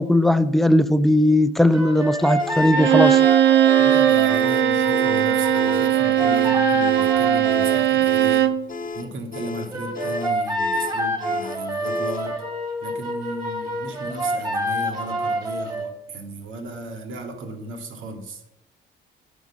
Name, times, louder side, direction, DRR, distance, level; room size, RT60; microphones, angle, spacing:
voice 1, 0.0-3.2, left 1 dB, ahead, 0.5 m, -18 dB
sound 1, 1.7-7.9 9.7-15.9, equal, 20° right, 2.5 m, -27 dB
sound 2, 2.4-12.3, left 4 dB, 45° left, 1.0 m, -34 dB
Bowed string instrument, 2.7-8.6, right 11 dB, 65° right, 0.6 m, -18 dB
voice 2, 3.8-8.5 8.9-12.4 12.8-18.4, right 2 dB, 80° right, 1.9 m, -35 dB
9.2 x 6.2 x 7.2 m
cardioid pair, 90°, 20 cm